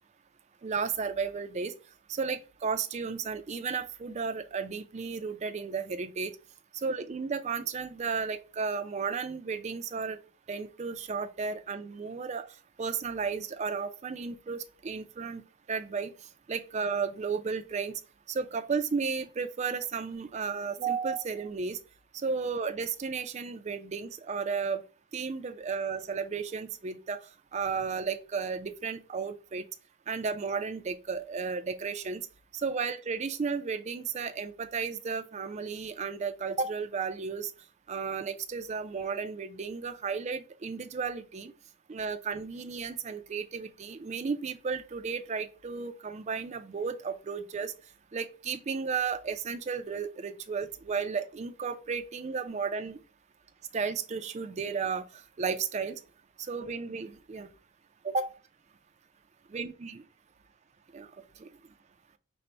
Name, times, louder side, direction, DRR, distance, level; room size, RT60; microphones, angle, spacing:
voice 1, 0.6-1.7 2.1-6.3 6.7-10.2 10.5-12.5 12.8-15.4 15.7-16.1 16.5-18.0 18.3-21.8 22.2-24.8 25.1-27.2 27.5-29.7 30.1-32.2 32.5-37.5 37.9-41.5 41.9-47.7 48.1-53.0 53.7-56.0 56.4-57.5 58.0-58.3 59.5-60.0 60.9-61.1 61.4-61.5, right 5 dB, 30° right, 0.3 m, -33 dB
5.2 x 2.0 x 4.2 m
head